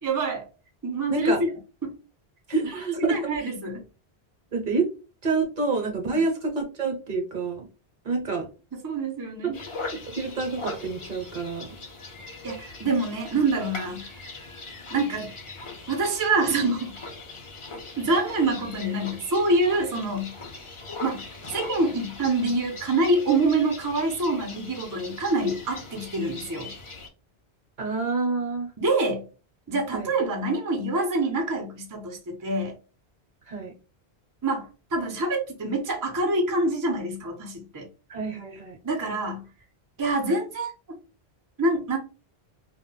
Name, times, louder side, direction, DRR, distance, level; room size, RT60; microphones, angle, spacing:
voice 1, 0.0-0.5 0.8-1.5 1.8-1.9 3.1-3.8 8.7-9.6 12.4-14.1 14.9-15.3 15.9-17.0 18.0-20.3 21.0-21.2 21.5-26.7 28.8-29.3 29.7-32.7 34.4-37.9 38.8-39.5 40.0-40.7 41.6-42.0, right 2 dB, 25° right, 0.4 m, -26 dB
voice 2, 2.5-3.2 4.5-4.9 5.2-7.7 8.0-8.5 9.4-9.5 9.9-11.7 27.8-28.7 29.9-30.1 33.5-33.7 38.1-38.8, right 4 dB, 50° right, 0.8 m, -27 dB
sound 1, 9.5-27.1, left 3 dB, 40° left, 0.5 m, -40 dB
2.1 x 2.0 x 3.7 m
omnidirectional pair, 1.1 m